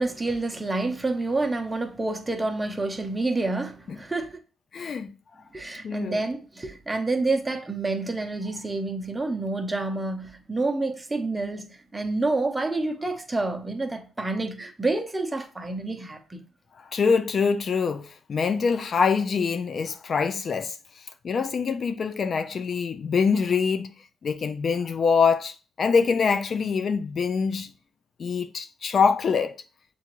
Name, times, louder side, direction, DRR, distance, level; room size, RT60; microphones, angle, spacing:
voice 1, 0.0-4.4 5.5-11.7 11.9-16.4, right 2 dB, 15° right, 0.7 m, -28 dB
voice 2, 4.7-5.1 5.8-6.2 16.9-20.8 21.2-23.9 24.2-27.7 28.2-29.6, left 5 dB, 50° left, 0.3 m, -24 dB
6.8 x 2.4 x 3.0 m
cardioid pair, 90°, 0 cm